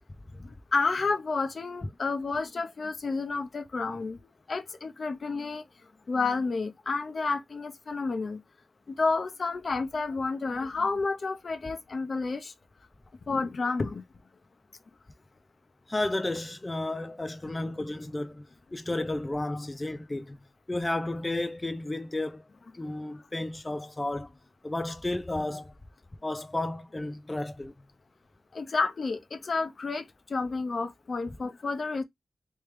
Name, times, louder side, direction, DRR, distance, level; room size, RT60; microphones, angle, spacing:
voice 1, 0.4-4.2 4.5-5.6 6.1-8.4 8.9-12.5 13.3-14.0 17.6-17.7 28.5-32.0, left 4 dB, 60° left, 0.7 m, -30 dB
voice 2, 15.9-20.4 20.7-22.4 22.7-24.3 24.6-25.7 26.2-27.7, left 2 dB, 25° left, 0.5 m, -32 dB
3.3 x 3.2 x 3.2 m
cardioid pair, 50°, 0 cm